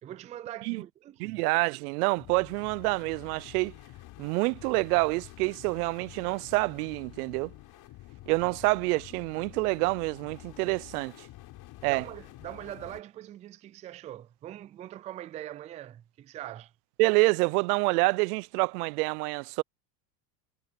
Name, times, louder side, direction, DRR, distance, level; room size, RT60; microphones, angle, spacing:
voice 1, 0.0-1.4 11.8-16.7, right 13 dB, 15° right, 0.3 m, -42 dB
voice 2, 1.2-3.7 4.2-7.5 8.3-11.1 11.8-12.0 17.0-19.6, right 26 dB, 65° right, 0.5 m, -27 dB
sound 1, 2.2-13.0, left 17 dB, 45° left, 4.3 m, -49 dB
supercardioid pair, 125°, 49 cm